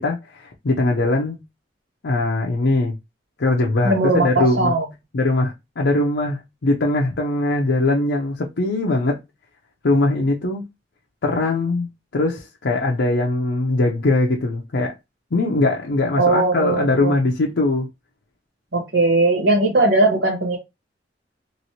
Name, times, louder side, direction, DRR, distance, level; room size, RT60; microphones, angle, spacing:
voice 1, 0.0-1.4 2.0-3.0 3.4-4.7 5.1-9.2 9.8-10.6 11.2-11.9 12.1-15.0 15.3-17.9, left 2 dB, 90° left, 0.6 m, -21 dB
voice 2, 3.8-4.8 16.2-17.1 18.7-20.6, right 2 dB, 80° right, 1.0 m, -19 dB
3.0 x 2.9 x 2.8 m
head